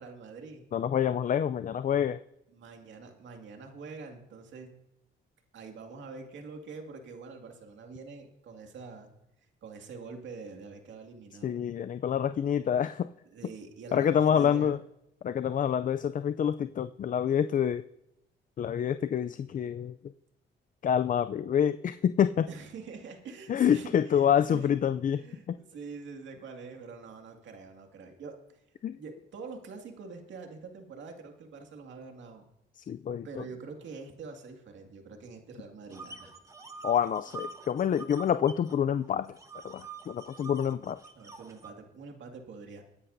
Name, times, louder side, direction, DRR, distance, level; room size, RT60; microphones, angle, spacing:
voice 1, 0.0-0.7 2.5-4.7 5.5-9.1 9.6-11.5 13.3-14.8 22.5-24.7 25.1-28.6 28.9-32.5 33.2-36.3 41.1-42.8, right 4 dB, 70° right, 4 dB, 2.2 m, -45 dB
voice 2, 0.7-2.2 11.4-13.1 13.9-14.8 15.2-17.8 18.6-20.0 20.8-22.5 23.5-25.5 28.8-29.0 32.9-33.4 36.8-39.3 39.6-41.0, left 8 dB, 40° left, 12 dB, 0.4 m, -27 dB
sound 1, 35.9-38.8 39.0-41.7, right 4 dB, 15° right, 1.2 m, -45 dB
23.0 x 10.0 x 2.7 m, 0.86 s
cardioid pair, 90°, 20 cm